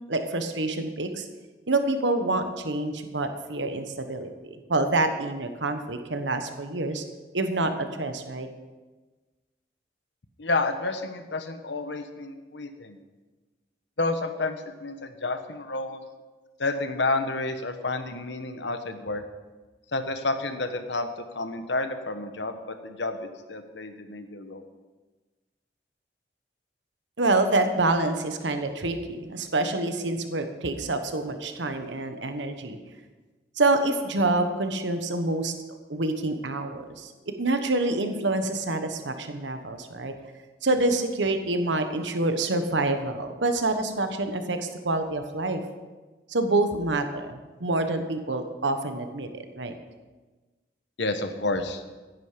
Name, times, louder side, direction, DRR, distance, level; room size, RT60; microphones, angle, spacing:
voice 1, 0.1-1.3 1.7-7.0 7.3-8.5 27.2-32.8 33.6-35.5 35.9-40.1 40.6-45.6 46.3-49.7, right 2 dB, 90° right, 7 dB, 1.3 m, -27 dB
voice 2, 10.4-13.0 14.0-16.0 16.6-19.2 19.9-21.1 21.3-24.6 51.0-51.8, left 2 dB, 80° left, 8 dB, 1.2 m, -30 dB
15.0 x 10.5 x 5.1 m, 1.3 s
head